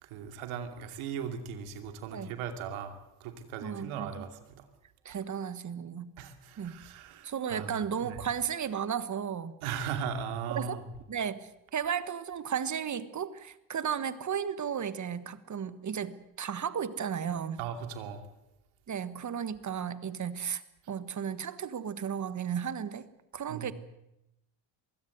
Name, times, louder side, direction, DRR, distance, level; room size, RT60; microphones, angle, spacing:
voice 1, 0.0-2.9 3.2-4.7 6.2-7.7 8.0-8.2 9.6-10.8 17.6-18.2 23.5-23.7, right 7 dB, 90° right, 6 dB, 2.8 m, -38 dB
voice 2, 3.6-4.3 5.0-6.1 6.6-6.8 7.2-9.5 10.5-10.8 11.1-17.6 18.9-20.6 20.9-23.1 23.3-23.7, right 8 dB, 35° right, 13 dB, 1.4 m, -34 dB
23.0 x 16.0 x 7.9 m, 0.88 s
cardioid pair, 100°, 48 cm